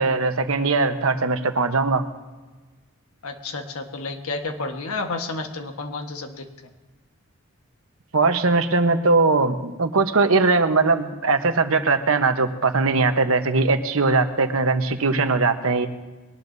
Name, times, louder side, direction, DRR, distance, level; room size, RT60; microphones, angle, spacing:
voice 1, 0.0-2.0 8.1-15.9, right 3 dB, 75° right, 8 dB, 1.1 m, -20 dB
voice 2, 3.2-6.5, left 3 dB, 85° left, 5 dB, 1.4 m, -31 dB
22.0 x 19.0 x 2.7 m, 1.3 s
head